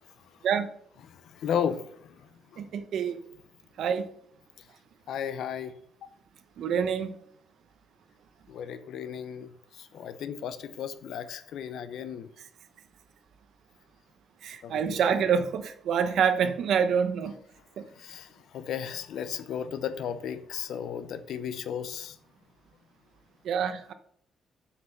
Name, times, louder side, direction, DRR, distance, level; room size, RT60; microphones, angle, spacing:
voice 1, 1.0-2.6 4.6-4.7 5.1-5.8 8.5-12.3 14.6-15.2 18.0-22.2, left 8 dB, 70° left, 13 dB, 0.7 m, -35 dB
voice 2, 2.6-3.2 3.8-4.1 6.6-7.2 14.4-17.3 17.8-17.9 23.4-23.9, right 7 dB, 60° right, 10 dB, 0.9 m, -26 dB
7.8 x 6.0 x 6.7 m, 0.66 s
cardioid pair, 175°, 0 cm